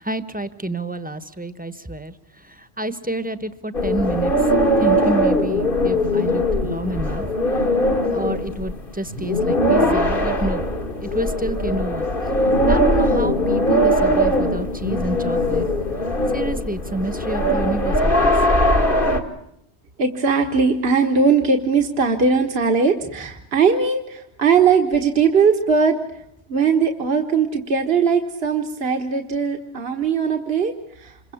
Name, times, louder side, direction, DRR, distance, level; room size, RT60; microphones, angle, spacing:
voice 1, 0.0-4.3 4.8-7.3 8.1-10.6 11.0-12.1 12.7-15.7 16.3-18.3, right 1 dB, 10° right, 13 dB, 1.1 m, -28 dB
sound 1, 3.7-19.2, equal, 55° left, 2.2 m, -20 dB
sound 2, 10.6-10.9 11.2-15.9, left 3 dB, 75° left, 3.0 m, -41 dB
voice 2, 20.0-25.9 26.5-31.3, right 5 dB, 65° right, 4 dB, 1.7 m, -19 dB
27.0 x 23.0 x 7.2 m, 0.75 s
omnidirectional pair, 1.1 m